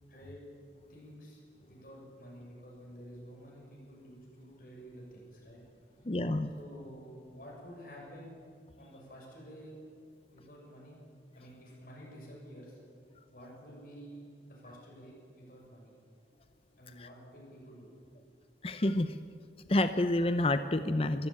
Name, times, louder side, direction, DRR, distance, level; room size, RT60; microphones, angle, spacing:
voice 1, 0.1-0.4 0.9-5.6 6.6-8.3 8.8-9.8 10.3-11.0 11.3-12.8 13.3-15.9 16.8-17.9, equal, 50° left, -3 dB, 7.0 m, -50 dB
voice 2, 6.0-6.5 17.0-17.1 18.6-19.2 19.7-21.3, left 1 dB, 30° left, 11 dB, 0.6 m, -28 dB
22.5 x 14.5 x 9.0 m, 2.3 s
head